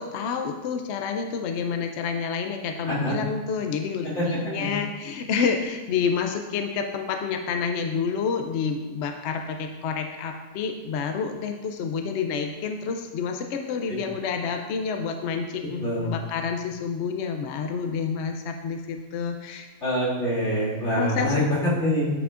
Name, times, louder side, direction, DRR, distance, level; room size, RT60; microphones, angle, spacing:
voice 1, 0.0-19.7 20.9-21.4, left 6 dB, 70° left, 5 dB, 0.6 m, -29 dB
voice 2, 15.8-16.1 19.8-22.1, equal, 45° left, -8 dB, 2.7 m, -25 dB
9.6 x 5.8 x 2.5 m, 1.2 s
omnidirectional pair, 1.7 m